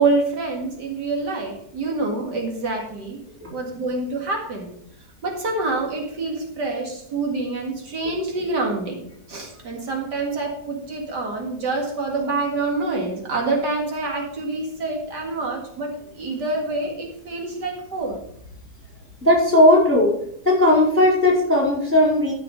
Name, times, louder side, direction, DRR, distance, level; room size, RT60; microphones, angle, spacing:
voice 1, 0.0-3.2 3.5-4.7 5.2-9.0 9.3-18.2, right 3 dB, 80° right, 1 dB, 2.6 m, -26 dB
voice 2, 19.2-20.2 20.4-22.3, left 1 dB, 5° right, -3 dB, 4.8 m, -16 dB
14.0 x 5.9 x 5.2 m, 0.69 s
omnidirectional pair, 1.8 m